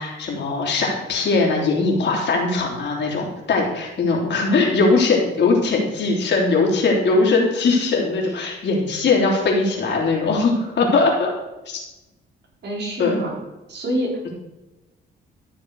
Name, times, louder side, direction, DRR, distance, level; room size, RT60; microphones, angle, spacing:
voice 1, 0.0-11.3 11.7-11.8 13.0-13.2, left 3 dB, 60° left, -1 dB, 3.4 m, -20 dB
voice 2, 12.6-13.3 13.7-14.3, equal, 60° right, -3 dB, 4.2 m, -26 dB
13.5 x 6.5 x 4.9 m, 1.0 s
cardioid pair, 90°, 20 cm